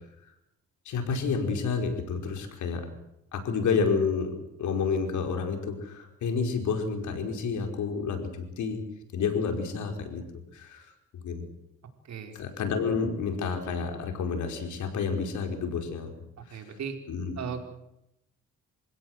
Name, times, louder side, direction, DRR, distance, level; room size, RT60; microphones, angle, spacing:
voice 1, 0.8-2.9 3.3-8.3 8.6-8.8 9.1-10.2 10.5-10.9 11.2-11.4 12.3-16.1 16.5-16.6 17.1-17.4, left 5 dB, 75° left, 5 dB, 5.1 m, -29 dB
voice 2, 16.5-16.9 17.4-17.6, right 7 dB, 65° right, 5 dB, 4.9 m, -36 dB
27.0 x 16.5 x 8.0 m, 0.84 s
cardioid pair, 90°, 30 cm